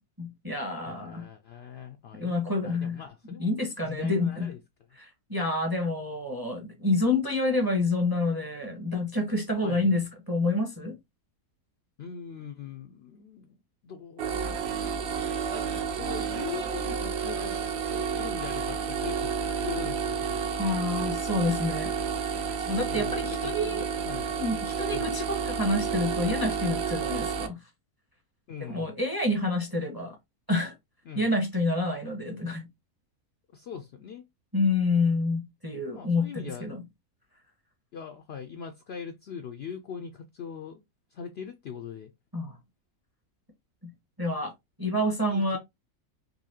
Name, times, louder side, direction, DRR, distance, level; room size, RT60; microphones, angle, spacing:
voice 1, 0.2-1.3 2.1-3.0 3.4-4.5 5.0-10.9 20.6-21.9 22.7-23.8 24.1-27.6 28.6-30.2 30.5-30.7 31.1-32.7 34.5-36.8 42.3-42.5 43.8-43.9 44.2-44.5 44.8-45.6, left 2 dB, 20° right, 0.6 m, -28 dB
voice 2, 0.9-4.6 9.6-10.0 12.0-13.6 13.8-20.4 22.9-24.3 24.9-25.1 28.5-28.9 31.1-31.3 33.5-34.2 35.9-36.7 37.9-40.8 41.1-42.1 45.3-45.6, left 7 dB, 85° left, 0.5 m, -41 dB
sound 1, 14.2-27.5, right 6 dB, 60° right, 0.6 m, -30 dB
4.0 x 2.7 x 2.7 m
omnidirectional pair, 1.6 m